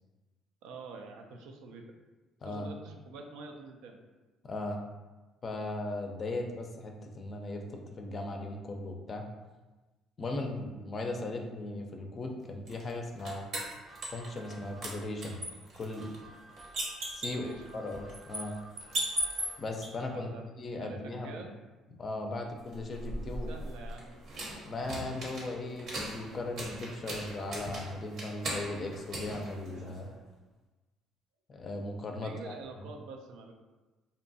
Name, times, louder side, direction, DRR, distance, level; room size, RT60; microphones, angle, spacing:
voice 1, 0.6-1.9 2.5-4.0 17.2-17.9 20.1-20.4 20.8-21.6 23.5-24.2 32.2-33.5, right 3 dB, 80° right, 3 dB, 0.3 m, -46 dB
voice 2, 4.4-4.8 5.4-9.2 10.2-13.5 14.1-15.4 15.8-16.1 17.1-18.5 19.6-20.3 20.6-21.4 22.0-23.5 24.6-30.1 31.5-32.3, left 2 dB, 40° left, 3 dB, 0.4 m, -37 dB
sound 1, 12.7-14.5 14.8-19.9 22.7-30.2, right 1 dB, 60° right, 0.8 m, -39 dB
sound 2, 13.7-20.3, right 2 dB, 20° right, 0.6 m, -55 dB
2.6 x 2.2 x 2.6 m, 1.2 s
supercardioid pair, 85°, 0 cm